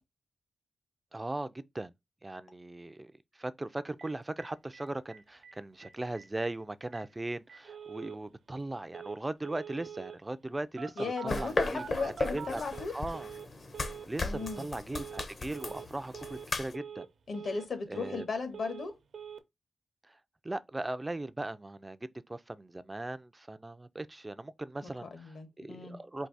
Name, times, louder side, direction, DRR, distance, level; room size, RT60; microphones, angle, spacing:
voice 1, 1.1-1.9 2.2-12.6 12.9-13.3 14.1-17.1 17.9-18.2 20.1-20.2 20.4-26.3, right 2 dB, 15° right, 0.4 m, -39 dB
Telephone, 4.0-4.1 4.4-4.5 4.7-4.8 5.1-5.5 5.8-5.9 6.2-6.5 6.9-7.0 7.5-8.2 8.9-9.2 9.4-10.2 10.8-13.5 13.7-14.1 14.3-14.7 14.9-15.3 15.5-15.9 16.1-16.5 16.7-17.1 17.3-18.3 18.5-18.9 19.1-19.4, right 7 dB, 80° right, 0.7 m, -45 dB
voice 2, 11.0-12.9 14.2-14.7 17.3-19.0 25.0-26.0, left 4 dB, 60° left, 1.3 m, -36 dB
sound 1, 11.3-16.7, left 3 dB, 40° left, 0.8 m, -36 dB
4.6 x 2.7 x 4.0 m
wide cardioid pair, 160°, 0 cm